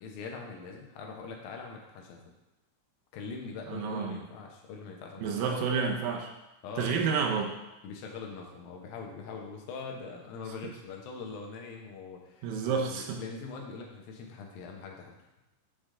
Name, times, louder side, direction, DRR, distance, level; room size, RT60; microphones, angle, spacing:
voice 1, 0.0-2.2 3.1-5.6 6.6-7.0 7.8-15.2, left 4 dB, 90° left, 1 dB, 2.8 m, -42 dB
voice 2, 3.7-4.3 5.2-6.3 6.8-7.5 12.4-13.2, right 5 dB, 80° right, 1 dB, 2.5 m, -30 dB
7.9 x 4.9 x 3.8 m, 0.96 s
omnidirectional pair, 4.0 m